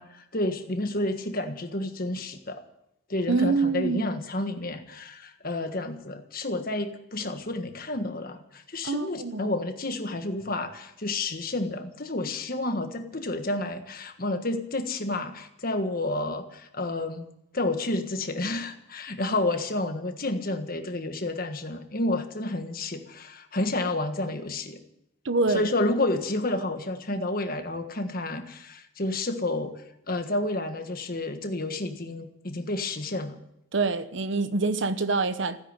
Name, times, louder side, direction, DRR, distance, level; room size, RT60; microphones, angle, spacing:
voice 1, 0.0-2.6 3.1-17.3 17.5-24.8 25.5-33.4, left 2 dB, 45° left, 1.5 m, -30 dB
voice 2, 3.3-4.1 8.8-9.5 25.2-25.7 33.7-35.6, right 3 dB, 60° right, 0.9 m, -26 dB
16.0 x 9.8 x 8.9 m
head